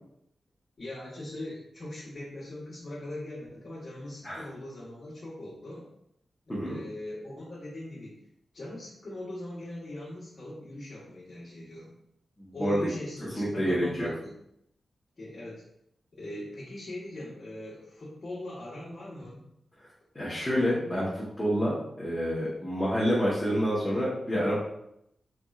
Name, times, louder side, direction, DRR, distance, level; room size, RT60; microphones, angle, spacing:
voice 1, 0.8-5.9 6.6-8.2 8.5-11.9 12.5-14.3 15.2-15.6 16.1-19.4, left 1 dB, 40° left, -9 dB, 1.2 m, -40 dB
voice 2, 12.4-12.8 13.3-14.1 20.1-24.5, equal, 15° left, -9 dB, 1.1 m, -28 dB
4.2 x 3.4 x 2.4 m, 0.78 s
wide cardioid pair, 105°, 0 cm